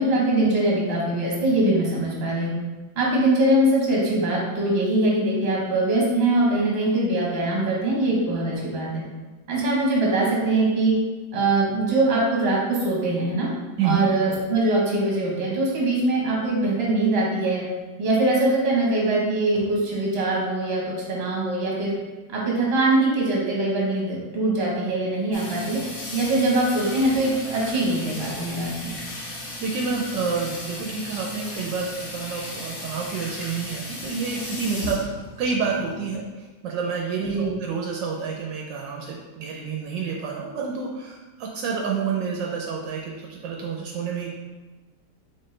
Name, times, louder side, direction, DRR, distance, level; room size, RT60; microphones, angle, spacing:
voice 1, 0.0-2.5 2.9-9.0 9.5-10.9 11.3-13.5 13.8-17.6 18.0-22.0 22.3-25.8 26.1-29.0 37.2-37.5, right 2 dB, 40° right, -4 dB, 1.2 m, -22 dB
voice 2, 13.8-14.1 29.6-35.0 35.4-44.3, right 5 dB, 75° right, -1 dB, 1.2 m, -28 dB
Water tap faucet / Sink (filling or washing), 25.3-36.2, left 1 dB, 85° left, 2.0 m, -36 dB
4.2 x 3.7 x 3.2 m, 1.2 s
omnidirectional pair, 2.0 m